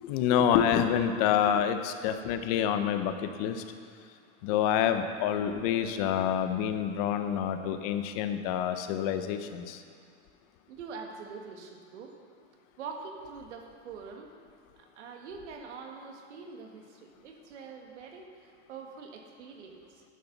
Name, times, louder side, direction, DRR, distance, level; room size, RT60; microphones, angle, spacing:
voice 1, 0.0-3.6 4.4-9.8, left 9 dB, 35° left, 9 dB, 0.6 m, -27 dB
voice 2, 10.7-12.1 12.8-14.3 14.8-20.0, right 5 dB, 80° right, 2 dB, 1.8 m, -44 dB
11.5 x 11.0 x 4.0 m, 2.3 s
supercardioid pair, 165°, 34 cm